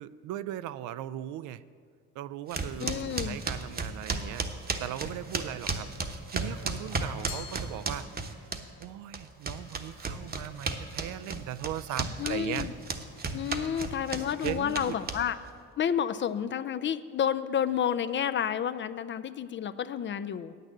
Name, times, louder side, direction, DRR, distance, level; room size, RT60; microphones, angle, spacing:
voice 1, 0.0-1.6 2.1-4.5 4.8-8.1 8.8-12.7 13.5-13.8 14.4-15.0, right 12 dB, 60° right, 15 dB, 0.4 m, -38 dB
sound 1, 2.5-8.9 9.1-15.5, right 3 dB, 25° right, 1.0 m, -34 dB
voice 2, 2.8-3.4 12.2-12.7 13.3-15.4 15.8-20.5, left 9 dB, 35° left, 13 dB, 0.4 m, -30 dB
Glass, 7.3-8.7, left 9 dB, 80° left, 1.2 m, -46 dB
8.8 x 6.7 x 7.3 m, 2.1 s
hypercardioid pair, 70°, 34 cm